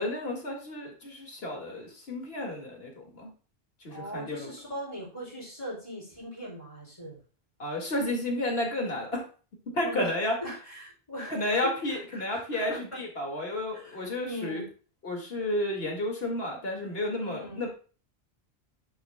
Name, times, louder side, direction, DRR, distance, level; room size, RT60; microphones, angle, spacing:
voice 1, 0.0-3.3 3.8-4.5 7.6-9.2 9.7-10.4 11.3-14.6 15.0-17.8, left 1 dB, 75° left, 0 dB, 2.3 m, -31 dB
voice 2, 3.9-7.2 9.8-13.0 13.7-14.6 17.2-17.6, equal, 30° left, -6 dB, 3.9 m, -40 dB
10.5 x 6.0 x 2.2 m, 0.38 s
omnidirectional pair, 1.0 m